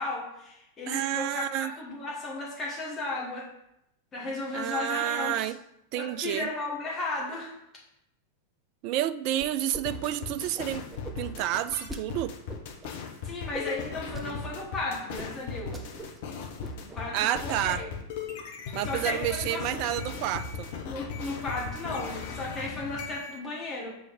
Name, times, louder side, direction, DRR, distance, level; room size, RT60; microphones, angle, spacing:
voice 1, 0.0-3.5 4.1-5.5 5.9-7.5 13.2-16.0 16.8-17.9 18.8-19.7 20.8-23.9, left 2 dB, 20° left, -4 dB, 1.5 m, -35 dB
voice 2, 0.9-1.7 4.5-5.6 5.9-6.5 8.8-10.9 11.2-12.3 17.1-17.9 18.7-20.7, right 12 dB, 45° right, 15 dB, 0.3 m, -30 dB
sound 1, 9.4-9.8 10.1-12.0 12.5-12.9 13.5-14.3 14.6-14.7 15.2-15.3 15.6-16.2 16.5-17.0 17.3-17.7, right 1 dB, 10° right, 0.8 m, -42 dB
sound 2, 9.8-23.4, left 5 dB, 50° left, 1.1 m, -38 dB
5.0 x 4.3 x 5.3 m, 0.82 s
figure-of-eight pair, 90°, 0 cm